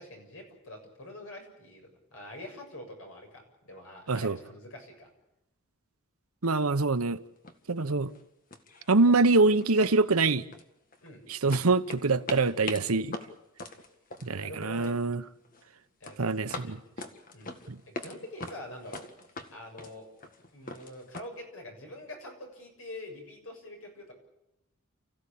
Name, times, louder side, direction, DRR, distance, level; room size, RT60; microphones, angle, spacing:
voice 1, 0.0-5.1 11.0-11.2 14.3-15.0 16.0-16.7 17.3-17.5 17.9-19.0 19.5-20.1 20.5-24.1, left 1 dB, 70° left, 7.0 m, -45 dB
voice 2, 6.4-7.2 7.7-8.1 8.9-10.4 11.3-13.1 14.2-15.2 16.2-16.8 17.7-17.8, right 3 dB, 90° right, 1.0 m, -24 dB
sound 1, 6.9-7.0 7.4-7.8 8.0-8.2 8.5-9.3 9.6-11.1 11.5-15.0 15.3-15.7 16.0-18.2 18.4-21.2, left 2 dB, 40° left, 1.8 m, -42 dB
29.5 x 15.0 x 8.6 m
head